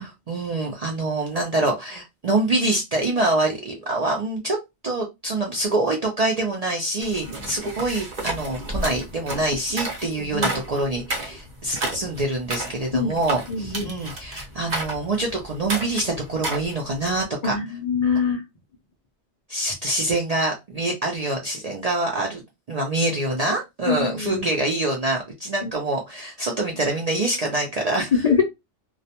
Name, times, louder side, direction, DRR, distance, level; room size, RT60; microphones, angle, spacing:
voice 1, 0.0-4.6 4.8-17.5 19.5-22.4 22.7-28.3, right 2 dB, 60° right, 0 dB, 0.4 m, -25 dB
sound 1, 7.0-17.2, right 2 dB, 40° right, 0.8 m, -32 dB
voice 2, 10.1-10.6 12.9-13.1 13.5-13.9 17.4-18.4 23.9-24.5 25.6-25.7 28.1-28.4, left 5 dB, 75° left, 2 dB, 0.3 m, -24 dB
2.3 x 2.1 x 2.8 m, 0.22 s
omnidirectional pair, 1.2 m